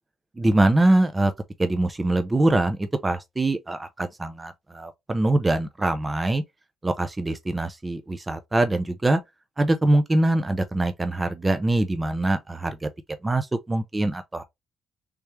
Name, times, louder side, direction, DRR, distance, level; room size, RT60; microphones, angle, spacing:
voice 1, 0.4-1.3 1.6-6.4 6.8-9.2 9.6-12.9 13.2-14.4, right 2 dB, 20° right, 0.5 m, -23 dB
3.4 x 3.1 x 3.2 m
cardioid pair, 90°, 0 cm